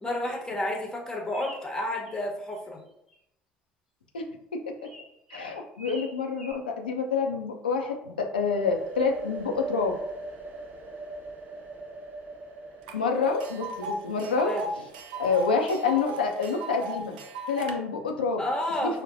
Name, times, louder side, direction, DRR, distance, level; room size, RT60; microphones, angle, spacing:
voice 1, 0.0-2.8 14.4-14.6 18.4-19.0, left 1 dB, 15° left, -1 dB, 0.8 m, -31 dB
sound 1, 1.3-2.2 2.5-3.1 4.8-6.5, equal, 10° right, 1.0 m, -46 dB
voice 2, 5.3-10.0 12.9-14.5 15.2-17.2 17.5-18.4 18.8-19.0, left 5 dB, 80° left, 3 dB, 0.4 m, -27 dB
sound 2, 8.4-16.1, right 2 dB, 35° right, 0.8 m, -42 dB
Tick, 12.9-13.0 13.2-17.7, right 1 dB, 70° right, 0.4 m, -36 dB
4.9 x 2.2 x 2.5 m, 0.78 s
figure-of-eight pair, 60°, 5 cm